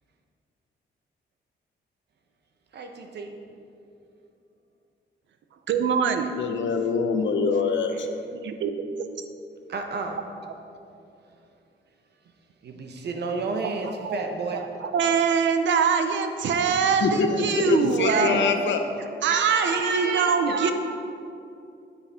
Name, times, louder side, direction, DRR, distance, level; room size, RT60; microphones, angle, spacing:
voice 1, 2.7-3.3 7.5-8.0 9.7-10.2 12.6-14.6 18.0-18.5 19.3-20.7, right 3 dB, 60° right, 4 dB, 1.1 m, -31 dB
voice 2, 5.7-6.3 8.3-8.7 9.0-9.1 13.6-14.3 14.8-18.5 19.2-20.7, right 6 dB, 80° right, 8 dB, 0.8 m, -24 dB
voice 3, 6.4-8.1 17.0-18.9, left 4 dB, 80° left, 6 dB, 0.9 m, -24 dB
9.8 x 9.0 x 4.3 m, 2.6 s
wide cardioid pair, 145°, 19 cm